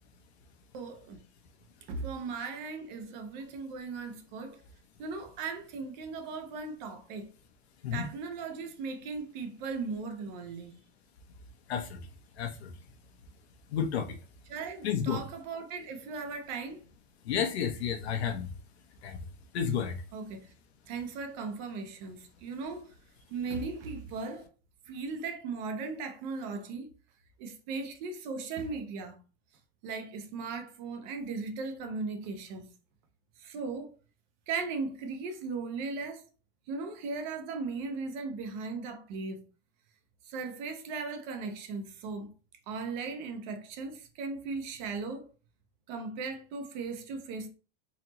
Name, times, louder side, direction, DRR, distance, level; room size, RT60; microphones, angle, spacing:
voice 1, 0.7-1.2 1.9-4.6 5.0-7.3 7.9-10.7 14.5-16.8 20.1-20.5 20.9-22.9 23.3-24.4 24.9-26.9 27.4-29.2 29.8-32.7 33.4-33.9 34.5-36.2 36.7-39.4 40.3-42.3 42.7-45.3 45.9-47.5, right 4 dB, 45° right, 0.9 m, -37 dB
voice 2, 12.4-12.7 13.7-14.2 14.8-15.2 17.3-18.5 19.0-19.2 19.5-20.0, left 7 dB, 80° left, 1.0 m, -31 dB
4.1 x 2.9 x 2.9 m
supercardioid pair, 150°, 31 cm